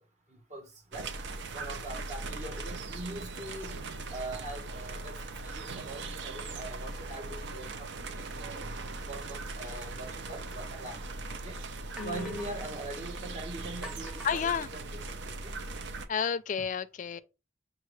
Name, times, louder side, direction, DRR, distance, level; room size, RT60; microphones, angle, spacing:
voice 1, 0.3-1.1 1.5-3.8 4.1-5.2 5.4-8.7 9.0-11.1 11.4-11.6 12.0-15.5 17.1-17.2, right 2 dB, 45° right, 1.2 m, -42 dB
sound 1, 0.9-16.1, right 3 dB, 90° right, 0.5 m, -39 dB
voice 2, 12.0-12.5 14.2-14.7 16.1-17.2, left 7 dB, 45° left, 0.3 m, -31 dB
sound 2, 12.0-12.7 13.8-15.3, equal, 5° right, 0.8 m, -48 dB
5.7 x 2.5 x 3.1 m
head